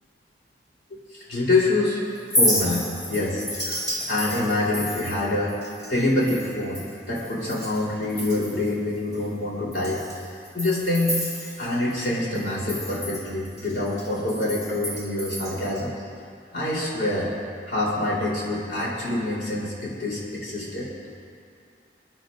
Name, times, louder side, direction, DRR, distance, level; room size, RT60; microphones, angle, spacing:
voice 1, 0.9-2.0 2.4-5.6 5.9-6.8 7.1-10.0 10.5-11.2 11.6-15.9 16.5-17.3 17.7-20.9, left 2 dB, 65° left, -6 dB, 3.9 m, -26 dB
Chink clink, 2.2-7.8 8.1-8.7 9.1-9.2 9.7-12.1 12.3-15.8, left 1 dB, 20° left, 2.4 m, -30 dB
26.5 x 10.5 x 2.6 m, 2.3 s
head